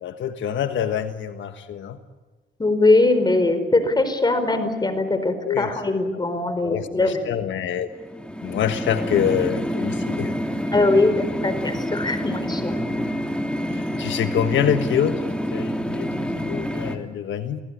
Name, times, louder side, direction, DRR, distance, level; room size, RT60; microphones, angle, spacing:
voice 1, 0.0-2.0 5.4-5.7 6.6-7.9 8.4-10.4 13.7-17.6, left 9 dB, 70° left, 8 dB, 1.5 m, -26 dB
voice 2, 2.6-7.3 10.7-12.7, left 2 dB, 20° left, 9 dB, 4.6 m, -21 dB
sound 1, 7.9-17.0, equal, 5° left, 2.8 m, -27 dB
29.0 x 18.5 x 9.9 m, 1.3 s
cardioid pair, 90°, 20 cm